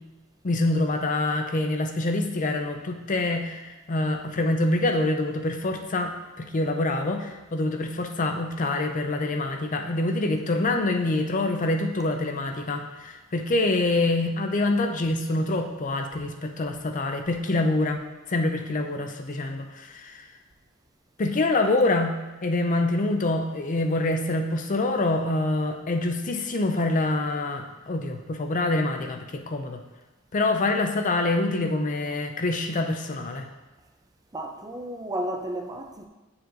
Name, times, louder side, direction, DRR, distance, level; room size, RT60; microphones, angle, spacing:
voice 1, 0.4-18.0 18.3-20.3 21.2-22.2 22.4-29.8 30.3-33.5, left 2 dB, 35° left, 5 dB, 0.5 m, -26 dB
voice 2, 34.3-36.1, right 1 dB, 15° right, 3 dB, 0.5 m, -32 dB
9.1 x 6.9 x 2.6 m, 1.1 s
head